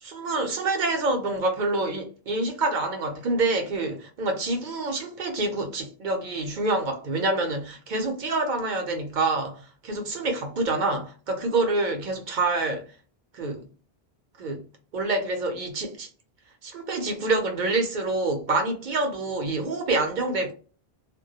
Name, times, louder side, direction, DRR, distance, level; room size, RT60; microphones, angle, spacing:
voice 1, 0.0-12.8 13.3-13.7 14.4-14.7 14.9-16.1 16.6-20.5, right 2 dB, 55° right, 0.7 m, -27 dB
2.2 x 2.1 x 2.7 m
omnidirectional pair, 1.1 m